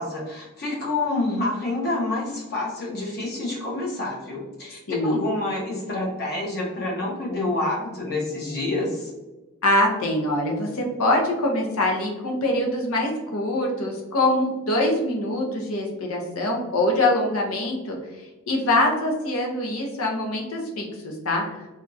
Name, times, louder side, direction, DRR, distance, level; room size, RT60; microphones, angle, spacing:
voice 1, 0.0-9.1, left 2 dB, 45° left, -3 dB, 1.1 m, -28 dB
voice 2, 4.9-5.2 9.6-18.0 18.5-21.4, left 1 dB, 70° left, 1 dB, 0.8 m, -24 dB
3.5 x 2.4 x 2.6 m, 1.1 s
head